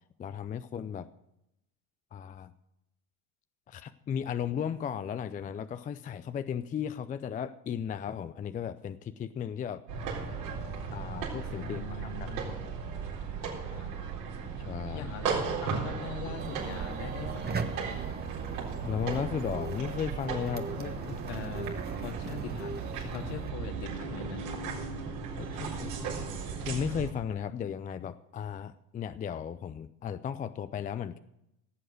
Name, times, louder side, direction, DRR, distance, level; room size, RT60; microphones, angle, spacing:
voice 1, 0.2-1.1 2.1-2.5 3.7-9.8 10.9-12.6 14.6-15.1 18.8-21.2 25.4-26.3 26.7-31.2, left 8 dB, 20° left, 12 dB, 0.4 m, -35 dB
sound 1, 9.9-27.1, right 5 dB, 75° right, 4.0 m, -36 dB
voice 2, 11.6-12.6 13.6-13.9 14.9-17.8 21.3-21.7 22.0-22.7 23.1-24.5, left 7 dB, 60° left, 4 dB, 2.4 m, -41 dB
sound 2, 16.4-23.5, right 5 dB, 20° right, 1.2 m, -39 dB
16.5 x 7.8 x 6.4 m, 0.83 s
hypercardioid pair, 85°, 47 cm